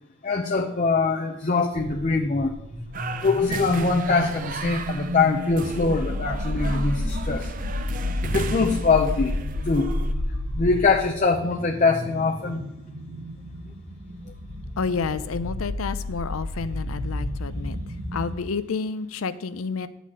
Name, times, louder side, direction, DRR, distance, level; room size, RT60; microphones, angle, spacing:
voice 1, 0.2-2.5 3.2-7.5 8.2-9.4 9.6-10.0 10.5-12.6, left 4 dB, 35° left, 2 dB, 0.5 m, -23 dB
sound 1, 1.7-18.3, left 1 dB, 90° right, 1.4 m, -31 dB
sound 2, 2.9-10.1, right 4 dB, 40° right, 0.5 m, -36 dB
voice 2, 14.8-17.8 18.1-19.9, left 5 dB, 80° left, 13 dB, 0.5 m, -29 dB
10.0 x 4.1 x 7.4 m, 0.90 s
head